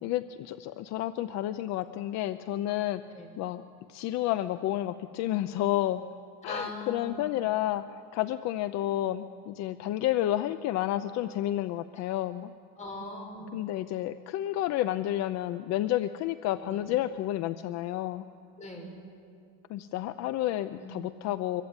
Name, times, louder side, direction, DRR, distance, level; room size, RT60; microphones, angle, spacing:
voice 1, 0.0-3.0 3.4-3.6 3.9-6.0 6.4-7.8 8.1-12.5 13.5-18.2 19.7-21.6, left 13 dB, 65° left, 12 dB, 0.7 m, -30 dB
voice 2, 6.4-7.2 12.8-13.5 16.6-16.9 18.6-19.0 20.8-20.9, left 1 dB, 25° left, 1 dB, 6.0 m, -40 dB
25.5 x 23.0 x 9.7 m, 2.4 s
cardioid pair, 165°, 30 cm